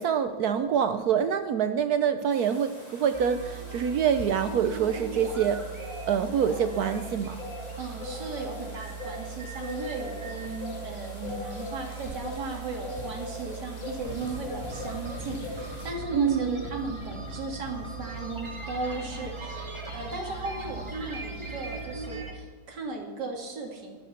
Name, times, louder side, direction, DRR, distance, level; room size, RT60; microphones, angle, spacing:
voice 1, 0.0-5.6 6.1-7.4 16.1-16.6, right 8 dB, 80° right, 10 dB, 0.8 m, -26 dB
sound 1, 2.3-15.9, equal, 15° left, 4.1 m, -49 dB
sound 2, 3.0-21.9, left 2 dB, 40° left, 2.2 m, -43 dB
sound 3, 3.1-22.3, right 4 dB, 15° right, 2.5 m, -39 dB
voice 2, 7.8-19.7 19.9-23.9, right 3 dB, 50° right, 1 dB, 2.9 m, -36 dB
12.5 x 10.0 x 7.1 m, 1.4 s
omnidirectional pair, 2.3 m